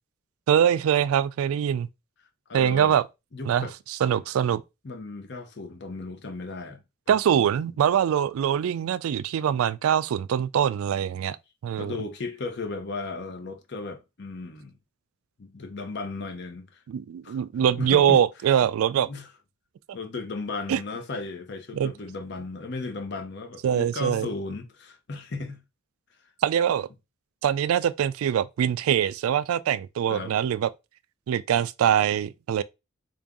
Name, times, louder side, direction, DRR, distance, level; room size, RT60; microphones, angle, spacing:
voice 1, 0.5-1.9 2.5-3.0 3.4-3.7 4.0-4.6 7.1-11.4 11.6-11.9 16.9-19.1 20.7-20.8 21.7-21.9 23.6-24.3 26.4-26.9 27.4-30.7 31.3-32.6, right 9 dB, 85° right, 0.3 m, -23 dB
voice 2, 2.5-3.0 3.3-3.7 4.8-7.4 11.8-14.8 15.4-16.8 17.2-17.4 17.8-18.2 19.0-19.3 19.9-25.6 30.1-30.3, left 3 dB, 55° left, 0.7 m, -35 dB
3.8 x 2.6 x 3.5 m
head